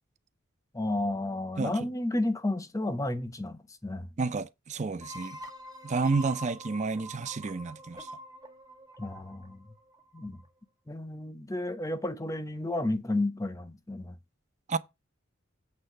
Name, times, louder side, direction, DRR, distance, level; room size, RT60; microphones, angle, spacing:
voice 1, 0.7-4.1 9.0-9.7 10.1-10.4 10.9-14.2, left 2 dB, 15° left, 0.7 m, -32 dB
voice 2, 4.2-5.4 5.8-8.1 14.7-14.8, right 4 dB, 35° right, 0.5 m, -30 dB
sound 1, 5.0-10.5, right 1 dB, 20° right, 1.1 m, -45 dB
8.2 x 3.3 x 6.5 m
head